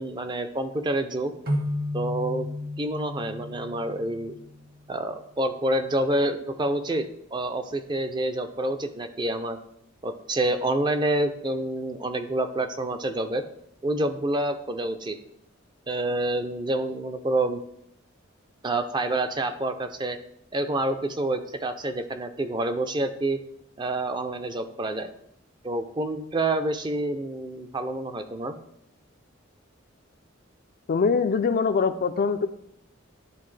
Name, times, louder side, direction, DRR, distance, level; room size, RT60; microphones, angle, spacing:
voice 1, 0.0-1.3 1.9-2.5 2.8-4.4 4.9-7.1 7.3-9.6 10.0-13.4 13.8-15.2 15.9-17.6 18.6-20.2 20.5-23.4 23.8-25.1 25.6-28.5, right 1 dB, 25° right, 8 dB, 0.5 m, -27 dB
sound 1, 1.5-5.0, left 1 dB, 50° right, 1.2 m, -33 dB
voice 2, 30.9-32.5, left 5 dB, 50° left, 10 dB, 0.4 m, -23 dB
11.0 x 3.8 x 3.2 m, 0.72 s
head